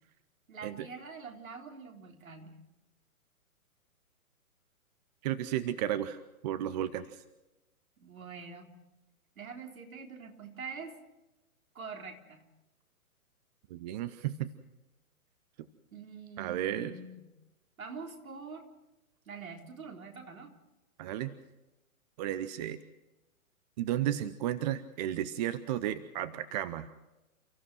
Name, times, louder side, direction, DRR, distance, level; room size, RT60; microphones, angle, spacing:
voice 1, 0.5-2.6 8.0-8.7 9.4-11.0 11.7-12.4 15.9-17.3 17.8-18.7 19.3-20.5, right 5 dB, 70° right, 2 dB, 4.0 m, -45 dB
voice 2, 5.2-7.2 13.7-14.5 16.4-16.9 21.0-21.3 22.2-22.8 23.8-26.9, right 12 dB, 30° right, 14 dB, 0.8 m, -33 dB
30.0 x 15.0 x 6.2 m, 0.99 s
figure-of-eight pair, 125°, 43 cm